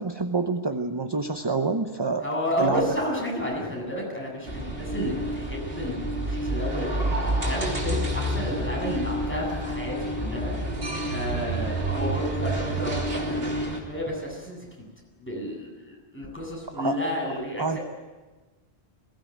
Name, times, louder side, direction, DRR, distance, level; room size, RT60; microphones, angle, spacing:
voice 1, 0.0-2.3 2.6-2.8 16.8-17.0 17.6-17.8, right 3 dB, 25° right, 7 dB, 0.9 m, -27 dB
voice 2, 2.2-7.2 7.4-10.5 11.1-14.6 15.2-17.8, equal, 10° left, -3 dB, 7.8 m, -31 dB
sound 1, 4.5-13.8, right 1 dB, 65° right, 3.4 m, -29 dB
21.5 x 18.0 x 9.4 m, 1.3 s
omnidirectional pair, 1.1 m